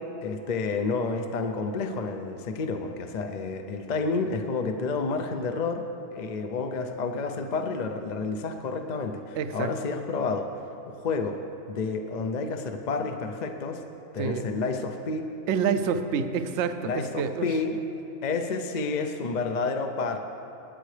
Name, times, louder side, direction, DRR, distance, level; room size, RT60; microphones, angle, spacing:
voice 1, 0.0-5.8 6.1-10.5 10.9-11.4 11.7-13.8 14.1-15.2 16.9-17.8 18.2-20.2, left 4 dB, 45° left, 5 dB, 0.6 m, -30 dB
voice 2, 9.4-9.7 14.2-14.4 15.5-17.5, right 6 dB, 65° right, 9 dB, 0.8 m, -27 dB
19.0 x 9.1 x 3.3 m, 2.9 s
omnidirectional pair, 1.4 m